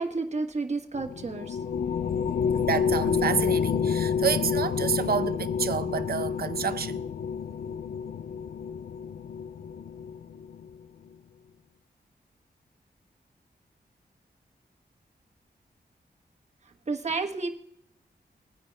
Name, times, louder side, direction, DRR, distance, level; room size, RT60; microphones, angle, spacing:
voice 1, 0.0-1.6 2.5-2.7 16.9-17.5, right 3 dB, 40° right, 1.2 m, -31 dB
sound 1, 0.9-10.7, left 7 dB, 70° left, 0.4 m, -29 dB
voice 2, 2.6-7.0, right 7 dB, 65° right, 0.6 m, -29 dB
21.0 x 9.7 x 2.3 m
wide cardioid pair, 145°, 17 cm